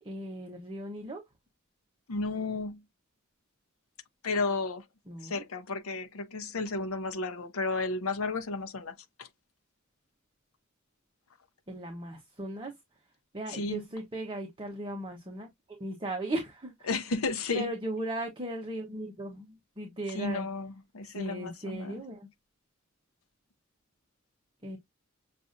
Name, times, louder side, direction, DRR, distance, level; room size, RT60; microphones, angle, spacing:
voice 1, 0.0-1.2 5.1-5.4 11.7-12.7 13.3-16.9 17.5-20.5 21.0-22.3 24.6-24.8, right 1 dB, 25° right, 1.0 m, -37 dB
voice 2, 2.1-2.8 4.2-4.8 5.2-9.3 13.5-13.9 16.9-17.7 20.1-22.0, left 3 dB, 90° left, 0.7 m, -33 dB
6.8 x 2.5 x 2.6 m
head